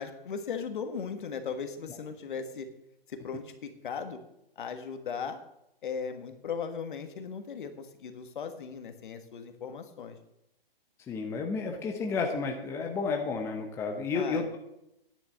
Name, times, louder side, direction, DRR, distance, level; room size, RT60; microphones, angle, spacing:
voice 1, 0.0-2.7 3.1-4.2 4.6-5.4 5.8-10.2 14.1-14.6, left 6 dB, 55° left, 8 dB, 1.7 m, -37 dB
voice 2, 11.1-14.6, left 4 dB, 10° left, 3 dB, 0.8 m, -31 dB
10.0 x 7.2 x 7.7 m, 0.84 s
hypercardioid pair, 145°, 30 cm